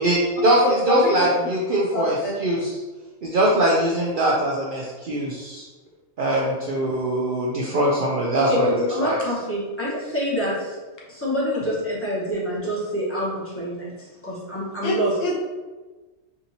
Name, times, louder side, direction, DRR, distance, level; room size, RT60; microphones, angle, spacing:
voice 1, 0.0-2.8 3.2-5.7 6.2-9.2, right 1 dB, 60° right, -4 dB, 0.6 m, -22 dB
voice 2, 1.9-2.3 14.8-15.3, left 1 dB, 70° left, -2 dB, 1.2 m, -24 dB
voice 3, 8.4-10.8 11.1-15.1, equal, 10° left, -7 dB, 1.1 m, -27 dB
4.8 x 2.7 x 2.8 m, 1.2 s
omnidirectional pair, 1.4 m